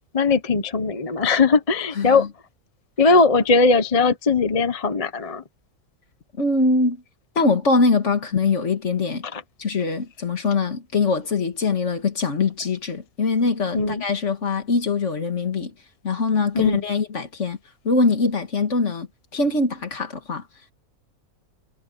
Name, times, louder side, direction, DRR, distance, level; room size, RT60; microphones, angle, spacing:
voice 1, 0.0-2.3 3.0-5.4 9.3-9.4 13.7-14.0 16.5-16.8, left 4 dB, 30° left, 1.0 m, -19 dB
voice 2, 1.9-2.3 6.4-7.0 7.4-9.3 9.6-15.7 16.0-17.6 17.8-19.1 19.3-20.4, left 3 dB, 55° left, 2.1 m, -22 dB
omnidirectional pair, 1.5 m